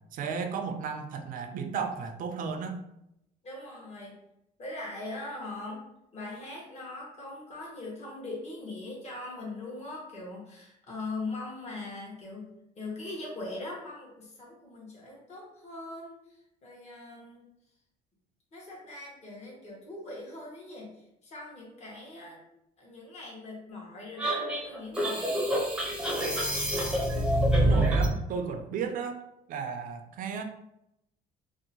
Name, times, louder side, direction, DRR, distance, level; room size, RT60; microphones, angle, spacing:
voice 1, 0.1-2.8 27.6-29.2 29.5-30.4, right 6 dB, 55° right, 6 dB, 0.4 m, -34 dB
voice 2, 3.4-4.2 4.6-5.8 6.1-17.4 18.5-22.4 22.8-25.4, left 2 dB, 40° left, -3 dB, 1.0 m, -41 dB
sound 1, 24.2-28.2, right 1 dB, 5° right, 0.6 m, -26 dB
2.6 x 2.1 x 2.7 m, 0.83 s
cardioid pair, 110°, 17 cm